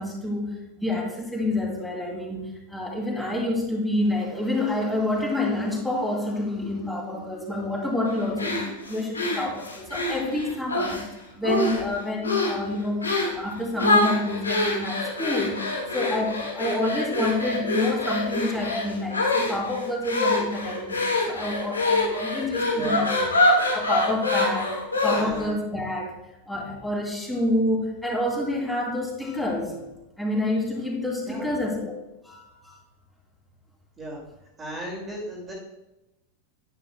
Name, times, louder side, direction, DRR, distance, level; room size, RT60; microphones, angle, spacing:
voice 1, 0.0-11.1 11.4-23.3 23.7-24.8 25.0-26.1 26.5-29.7 30.2-31.9 32.2-32.8, left 1 dB, 5° left, -3 dB, 2.7 m, -28 dB
sound 1, 8.4-11.0 11.4-11.9 12.2-12.6 13.0-13.4 13.8-25.5, left 2 dB, 75° left, 1.7 m, -25 dB
voice 2, 22.7-23.0 25.1-25.5 31.2-31.5 34.0-34.2 34.6-35.5, right 1 dB, 20° right, -3 dB, 2.2 m, -35 dB
10.5 x 9.9 x 2.2 m, 0.93 s
figure-of-eight pair, 90°, 0 cm